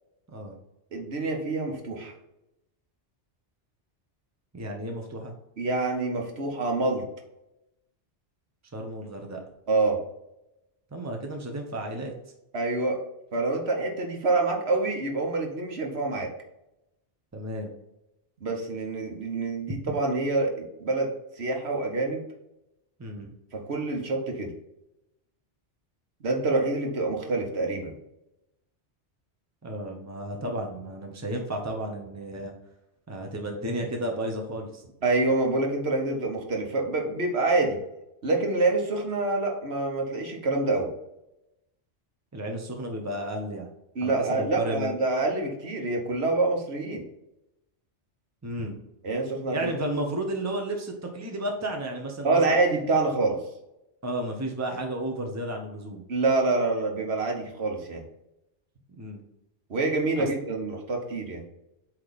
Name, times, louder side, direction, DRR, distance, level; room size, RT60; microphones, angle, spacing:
voice 1, 0.9-2.1 5.6-7.0 9.7-10.0 12.5-13.0 13.3-16.3 18.4-21.1 21.4-22.2 23.5-24.5 26.2-27.9 35.0-37.8 38.2-40.9 43.9-47.0 49.0-49.7 52.2-53.4 56.1-58.0 59.7-61.4, right 3 dB, 65° right, 2 dB, 1.4 m, -26 dB
voice 2, 4.5-5.3 8.7-9.4 10.9-12.1 17.3-17.7 19.7-19.8 23.0-23.3 29.6-32.5 33.1-34.8 42.3-43.7 44.0-44.9 48.4-48.8 49.5-52.4 54.0-56.0 59.0-59.2 60.2-60.3, right 1 dB, 15° right, 2 dB, 0.9 m, -33 dB
8.2 x 3.2 x 4.1 m, 0.89 s
omnidirectional pair, 1.2 m